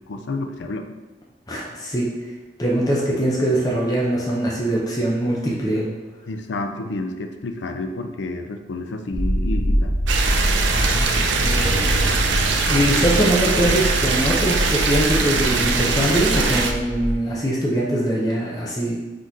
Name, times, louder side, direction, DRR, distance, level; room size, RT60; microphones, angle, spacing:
voice 1, 0.1-0.9 6.3-10.0, left 2 dB, 75° left, 6 dB, 0.5 m, -30 dB
voice 2, 1.5-2.1 2.6-5.9 10.7-11.9 12.6-19.0, right 1 dB, 20° left, -5 dB, 0.7 m, -22 dB
sound 1, 9.1-17.1, equal, 30° right, 0.6 m, -24 dB
sound 2, 10.1-16.7, right 4 dB, 80° right, 0.5 m, -22 dB
4.2 x 3.1 x 4.0 m, 1.2 s
head